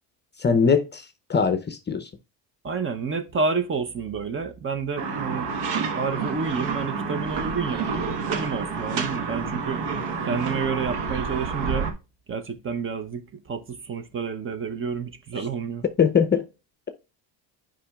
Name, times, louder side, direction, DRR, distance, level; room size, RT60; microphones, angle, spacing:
voice 1, 0.4-1.0 1.3-2.1 16.0-16.4, left 6 dB, 25° left, 0.6 m, -21 dB
voice 2, 2.6-5.5 5.9-9.8 10.2-11.9 12.3-15.8, right 5 dB, 25° right, 0.7 m, -29 dB
sound 1, 5.0-11.9, right 5 dB, 60° right, 1.4 m, -29 dB
8.4 x 5.2 x 2.3 m
cardioid pair, 120°, 46 cm